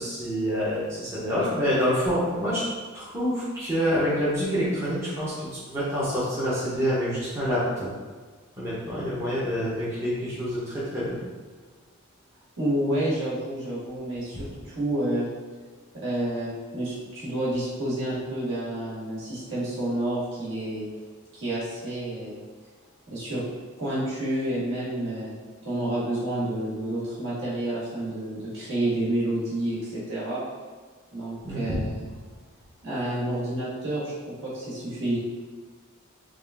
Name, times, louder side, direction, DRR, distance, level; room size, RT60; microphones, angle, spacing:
voice 1, 0.0-2.6 2.9-7.9 8.6-11.2 31.4-31.7, equal, 15° right, -11 dB, 0.8 m, -27 dB
voice 2, 12.6-15.3 15.9-20.8 21.3-22.4 23.1-23.4 23.8-25.4 25.6-30.4 31.1-31.9 32.8-35.2, right 1 dB, 55° right, -9 dB, 1.5 m, -29 dB
3.5 x 2.4 x 3.4 m, 1.5 s
head